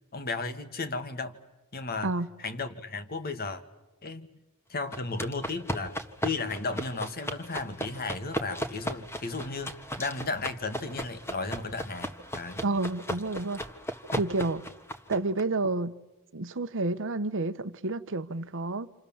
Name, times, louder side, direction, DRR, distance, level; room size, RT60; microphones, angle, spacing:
voice 1, 0.1-1.4 1.7-2.1 2.4-3.6 4.0-4.3 4.7-12.6 14.1-14.2, left 3 dB, 45° left, 1.8 m, -34 dB
sound 1, 4.9-15.4, equal, 10° left, 1.6 m, -36 dB
voice 2, 12.6-13.6 14.2-14.6 15.1-15.9 16.3-18.9, right 2 dB, 60° right, 1.1 m, -29 dB
29.5 x 27.5 x 7.3 m
head